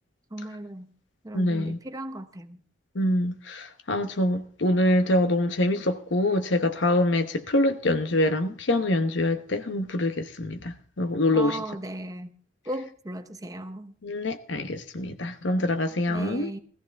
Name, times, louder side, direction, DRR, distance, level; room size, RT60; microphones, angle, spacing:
voice 1, 0.3-0.9 1.2-2.6 11.3-12.3 12.7-13.9 16.1-16.6, right 1 dB, 20° right, 0.9 m, -36 dB
voice 2, 1.3-1.8 2.9-11.6 14.0-16.5, left 1 dB, 70° left, 1.0 m, -25 dB
16.5 x 14.5 x 3.5 m
head